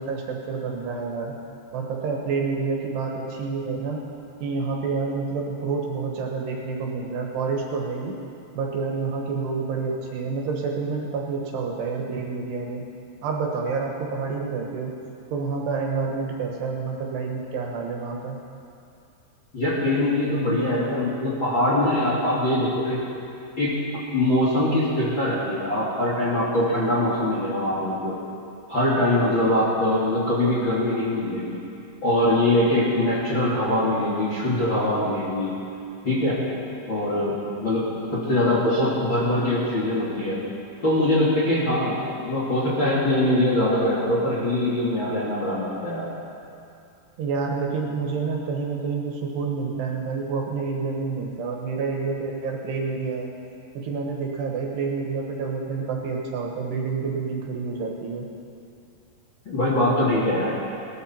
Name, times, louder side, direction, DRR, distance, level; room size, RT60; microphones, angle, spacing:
voice 1, 0.0-1.4 1.7-4.0 4.4-8.2 8.5-12.8 13.2-14.9 15.3-18.4 47.2-53.3 53.7-58.3, right 4 dB, 70° right, 0 dB, 3.2 m, -28 dB
voice 2, 19.5-23.0 23.6-23.8 24.1-28.1 28.7-31.6 32.0-35.6 36.0-36.4 36.9-37.8 38.3-40.4 40.8-46.1 59.5-60.5, left 1 dB, 35° left, -7 dB, 2.3 m, -22 dB
19.0 x 12.5 x 4.4 m, 2.6 s
omnidirectional pair, 5.2 m